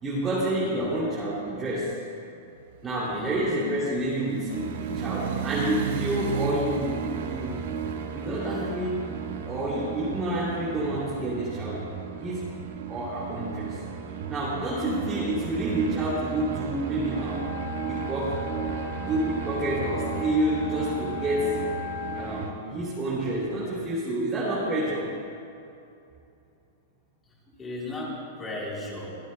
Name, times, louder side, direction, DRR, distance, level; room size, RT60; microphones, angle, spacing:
voice 1, 0.0-2.0 2.8-7.6 8.1-9.1 9.5-11.9 12.2-12.5 12.9-13.8 14.3-17.5 17.7-18.5 18.8-21.6 22.1-25.2, right 1 dB, 10° right, -8 dB, 2.6 m, -29 dB
sound 1, 2.6-10.6, right 8 dB, 50° right, 0.7 m, -36 dB
voice 2, 2.9-3.3 15.2-15.4 27.6-29.1, left 2 dB, 15° left, -4 dB, 3.4 m, -36 dB
sound 2, 4.5-22.5, right 7 dB, 75° right, 1.6 m, -35 dB
Wind instrument woodwind instrument, 17.0-22.3, left 11 dB, 80° left, 3.1 m, -38 dB
27.5 x 16.0 x 2.2 m, 2.7 s
supercardioid pair, 170°, 0 cm